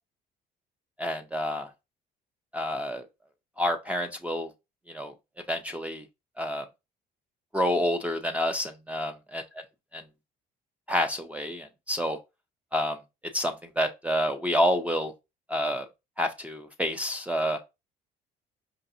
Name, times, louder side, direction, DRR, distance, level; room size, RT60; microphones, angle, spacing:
voice 1, 1.0-1.7 2.5-3.0 3.6-4.5 4.9-5.1 5.5-6.0 6.4-6.6 7.5-9.4 9.9-10.0 10.9-12.2 12.7-13.0 13.3-15.1 15.5-15.9 16.2-17.6, equal, 10° right, 0.4 m, -28 dB
4.8 x 2.5 x 2.5 m
cardioid pair, 110°, 17 cm